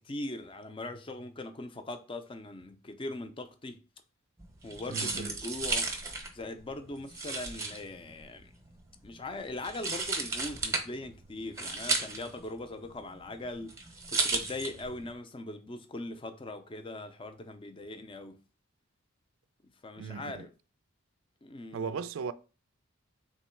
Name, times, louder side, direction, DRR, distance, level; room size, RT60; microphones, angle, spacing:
voice 1, 0.0-3.8 4.6-5.9 6.3-8.5 9.0-13.7 14.1-18.4 19.8-20.5 21.4-22.0, left 2 dB, 25° left, 0.5 m, -40 dB
sound 1, 4.4-15.1, right 3 dB, 15° right, 0.7 m, -35 dB
voice 2, 4.9-5.3 20.0-20.5 21.7-22.3, right 5 dB, 80° right, 0.4 m, -37 dB
3.7 x 3.1 x 4.4 m
head